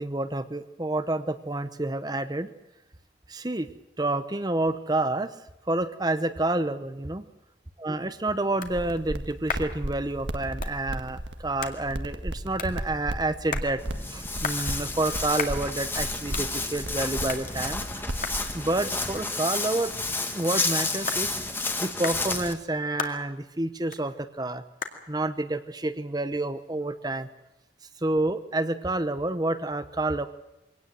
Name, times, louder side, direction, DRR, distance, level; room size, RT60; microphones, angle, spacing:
voice 1, 0.0-2.5 3.3-3.7 4.0-5.3 5.7-7.3 7.8-13.8 14.1-18.0 18.5-19.9 20.3-21.3 21.8-24.6 25.1-27.3 28.0-30.3, right 2 dB, 20° right, 11 dB, 0.9 m, -29 dB
sound 1, 7.7-27.0, left 5 dB, 50° left, 2.2 m, -41 dB
sound 2, 8.6-19.0, right 1 dB, 80° right, 1.7 m, -36 dB
Walk footsteps, 13.8-22.5, left 3 dB, 10° left, 1.7 m, -31 dB
24.0 x 18.0 x 7.7 m, 0.92 s
head